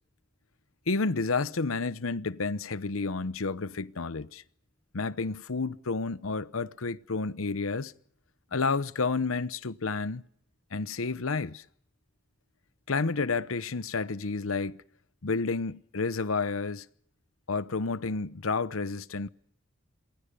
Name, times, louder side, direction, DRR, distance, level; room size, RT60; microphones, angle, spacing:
voice 1, 0.9-4.4 4.9-7.9 8.5-10.2 10.7-11.6 12.9-14.8 15.2-16.9 17.5-19.3, left 4 dB, 85° left, 0.9 m, -30 dB
27.5 x 21.5 x 6.8 m
head